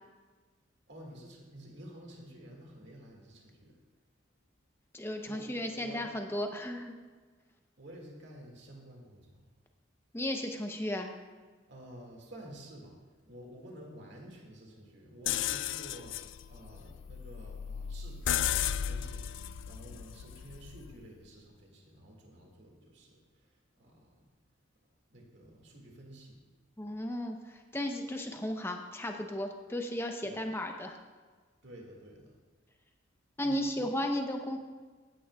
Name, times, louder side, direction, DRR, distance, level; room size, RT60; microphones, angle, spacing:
voice 1, 0.9-3.8 5.2-6.1 7.8-9.5 11.7-13.0 13.3-24.3 25.1-26.4 30.2-30.4 31.6-32.4 33.4-33.9, right 1 dB, 60° right, -1 dB, 2.0 m, -51 dB
voice 2, 4.9-6.9 10.1-11.1 26.8-31.0 33.4-34.6, left 1 dB, 10° left, 4 dB, 0.7 m, -35 dB
sound 1, 15.3-21.1, left 10 dB, 70° left, 0.3 m, -35 dB
15.5 x 9.3 x 2.3 m, 1.4 s
head